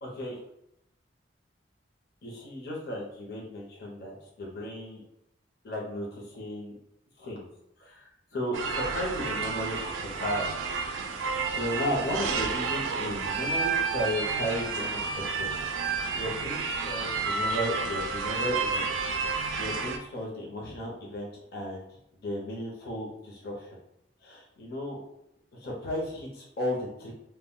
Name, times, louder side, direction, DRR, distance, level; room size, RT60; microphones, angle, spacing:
voice 1, 0.0-0.4 2.2-5.0 5.6-6.8 7.2-7.5 7.8-10.5 11.1-15.5 15.8-19.0 19.6-21.9 22.2-23.7 24.2-25.0 25.6-27.1, equal, 55° left, -3 dB, 0.6 m, -35 dB
sound 1, 8.5-20.0, right 4 dB, 90° right, 0.3 m, -30 dB
2.2 x 2.1 x 3.6 m, 0.79 s
head